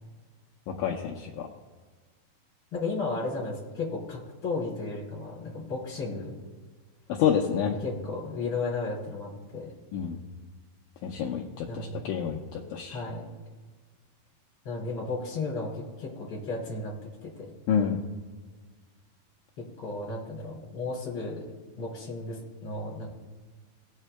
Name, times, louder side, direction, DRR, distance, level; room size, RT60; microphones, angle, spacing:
voice 1, 0.8-1.5 7.1-7.8 9.9-10.2 11.0-13.0 17.7-18.0, left 8 dB, 75° left, -1 dB, 2.3 m, -28 dB
voice 2, 2.7-6.4 7.8-9.7 11.7-12.1 12.9-13.3 14.7-17.0 17.2-17.5 19.6-21.5 21.8-23.1, left 3 dB, 35° left, -4 dB, 3.5 m, -34 dB
20.0 x 7.3 x 2.2 m, 1.4 s
omnidirectional pair, 4.3 m